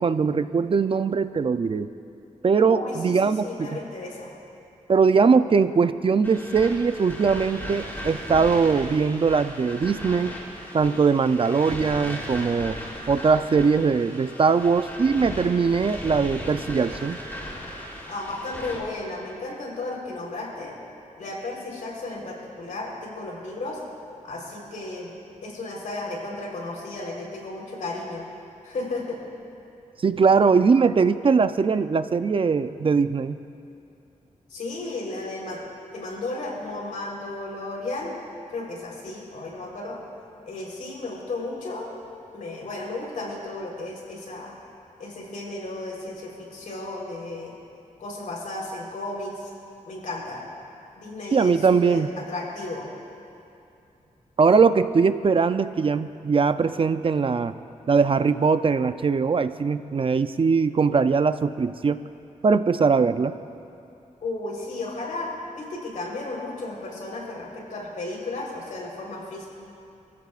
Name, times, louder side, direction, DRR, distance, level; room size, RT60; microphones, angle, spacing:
voice 1, 0.0-1.9 2.4-3.8 4.9-10.4 10.7-12.8 13.1-17.2 30.0-33.4 51.3-52.1 54.4-57.5 57.9-62.0 62.4-63.3, right 5 dB, 45° right, 11 dB, 0.5 m, -21 dB
voice 2, 2.6-4.3 18.1-20.8 21.2-23.8 24.2-25.1 25.4-28.2 28.6-29.2 34.5-35.6 35.9-38.2 38.5-40.0 40.5-41.9 42.3-44.5 45.0-47.6 48.0-49.5 49.9-50.4 51.0-52.9 64.2-69.5, left 2 dB, 80° left, -2 dB, 3.8 m, -34 dB
sound 1, 6.2-18.8, equal, 15° left, 3.3 m, -37 dB
30.0 x 14.0 x 2.5 m, 2.6 s
wide cardioid pair, 100°, 13 cm